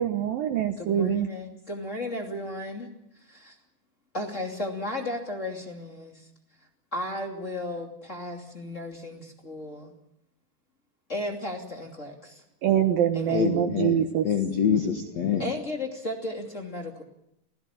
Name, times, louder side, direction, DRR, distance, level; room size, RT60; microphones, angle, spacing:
voice 1, 0.0-1.3 12.6-14.3, right 9 dB, 70° right, 7 dB, 2.4 m, -24 dB
voice 2, 0.8-2.9 3.3-3.6 4.1-6.3 6.9-9.9 11.1-12.4 13.1-13.5 15.4-17.0, left 1 dB, 20° left, 1 dB, 2.1 m, -34 dB
voice 3, 13.3-15.4, left 7 dB, 60° left, 4 dB, 1.8 m, -26 dB
27.5 x 17.0 x 7.2 m, 0.81 s
omnidirectional pair, 5.2 m